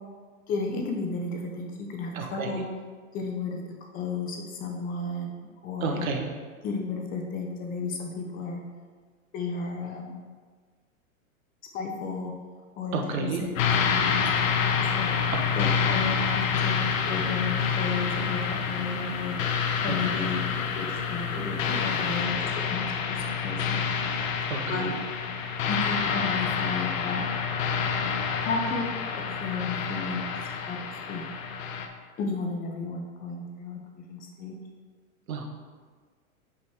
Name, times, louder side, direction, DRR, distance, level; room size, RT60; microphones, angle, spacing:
voice 1, 0.5-2.6 3.1-3.6 3.9-6.1 6.6-8.6 9.3-10.2 11.7-12.3 12.8-15.1 15.6-16.8 17.1-19.4 19.8-20.4 20.8-22.4 22.6-23.9 24.7-24.9 25.7-27.2 28.4-30.3 30.6-30.8 31.1-31.2 32.2-34.5, left 4 dB, 20° left, 1 dB, 0.5 m, -33 dB
voice 2, 2.1-2.7 5.8-6.3 12.9-13.5 15.3-15.8 19.9-20.2 24.5-24.9 35.3-35.5, right 4 dB, 75° right, 3 dB, 1.1 m, -31 dB
sound 1, 13.6-31.9, left 6 dB, 70° left, 0.8 m, -28 dB
6.0 x 5.3 x 3.5 m, 1.6 s
hypercardioid pair, 130°, 41 cm